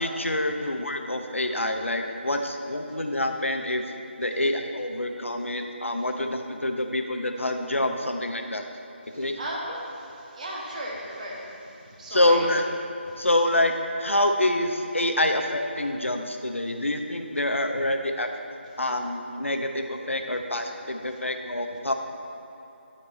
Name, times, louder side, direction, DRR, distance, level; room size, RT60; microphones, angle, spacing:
voice 1, 0.0-3.8 4.2-8.7 9.1-9.3 12.1-12.7 13.2-13.7 14.0-18.3 18.8-21.9, left 1 dB, 90° left, 5 dB, 0.8 m, -26 dB
voice 2, 9.4-12.5 13.1-13.2, right 1 dB, 35° right, -3 dB, 1.2 m, -36 dB
13.0 x 4.6 x 4.2 m, 2.9 s
figure-of-eight pair, 160°, 7 cm